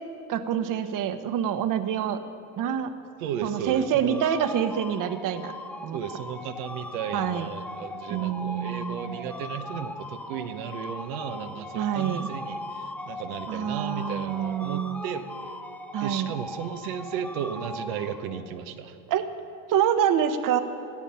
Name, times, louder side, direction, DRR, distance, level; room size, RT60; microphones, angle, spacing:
voice 1, 0.3-2.2 2.6-2.9 3.4-5.5 5.8-6.0 7.1-7.5 8.1-9.2 11.7-12.3 13.5-15.0 15.9-16.3 19.1-19.2 19.7-20.6, right 9 dB, 50° right, 9 dB, 1.1 m, -26 dB
voice 2, 3.2-4.2 5.9-15.2 16.0-19.0, right 8 dB, 85° right, 7 dB, 1.1 m, -34 dB
sound 1, 3.3-18.6, left 1 dB, 5° left, 0.6 m, -39 dB
18.0 x 12.0 x 5.7 m, 2.9 s
supercardioid pair, 95°, 41 cm